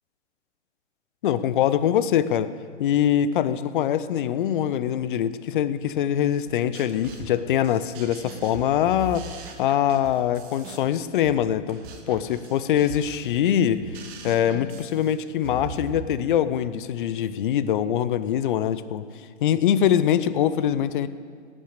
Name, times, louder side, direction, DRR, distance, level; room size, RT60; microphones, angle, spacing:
voice 1, 1.2-2.5 2.8-9.3 9.6-11.8 12.1-19.0 19.4-21.1, left 10 dB, 40° left, 15 dB, 0.7 m, -23 dB
sound 1, 6.5-16.0, right 4 dB, 25° right, 1.4 m, -41 dB
17.5 x 8.8 x 6.6 m, 2.2 s
hypercardioid pair, 130°, 38 cm